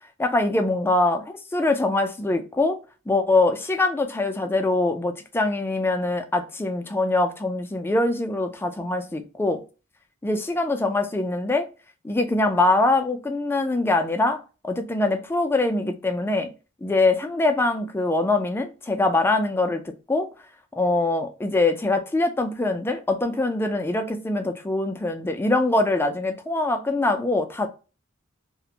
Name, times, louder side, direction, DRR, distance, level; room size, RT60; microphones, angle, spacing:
voice 1, 0.2-1.2 1.5-2.8 3.1-9.6 10.2-11.7 12.0-14.4 14.6-16.5 16.8-19.8 20.1-20.3 20.7-27.7, left 2 dB, 10° left, 0.3 m, -23 dB
2.4 x 2.1 x 2.7 m
head